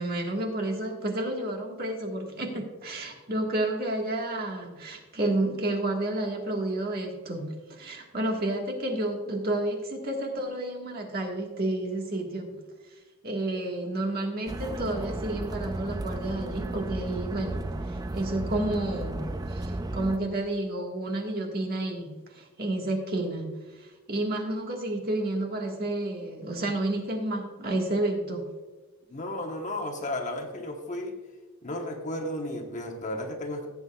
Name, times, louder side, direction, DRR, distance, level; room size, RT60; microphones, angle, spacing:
voice 1, 0.0-12.5 13.2-28.5, right 1 dB, 45° right, 2 dB, 1.6 m, -30 dB
sound 1, 14.5-20.2, right 2 dB, 15° right, 0.3 m, -34 dB
voice 2, 29.1-31.2 31.6-33.7, left 1 dB, 35° left, 2 dB, 1.1 m, -33 dB
16.5 x 8.1 x 2.3 m, 1.3 s
head